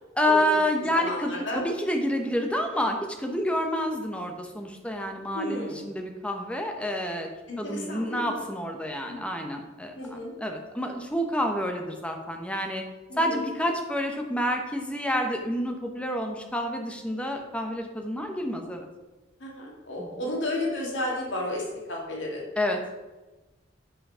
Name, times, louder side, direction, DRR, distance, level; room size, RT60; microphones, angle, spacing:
voice 1, 0.2-7.3 7.6-12.8 13.2-18.9 20.0-20.1 22.6-23.0, equal, 5° left, 3 dB, 0.9 m, -29 dB
voice 2, 0.9-1.6 5.3-5.8 7.5-8.4 9.1-9.2 10.0-10.3 13.1-13.4 19.4-22.5, left 1 dB, 75° left, -2 dB, 2.1 m, -32 dB
7.6 x 5.4 x 5.5 m, 1.1 s
head